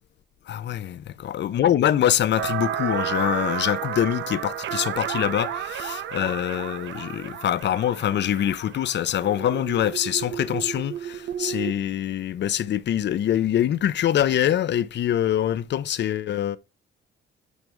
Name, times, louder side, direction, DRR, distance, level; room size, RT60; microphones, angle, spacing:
voice 1, 0.5-16.6, left 11 dB, 60° left, 0.7 m, -24 dB
sound 1, 2.4-11.7, right 9 dB, 70° right, 0.9 m, -32 dB
9.6 x 5.2 x 3.4 m
cardioid pair, 90°, 20 cm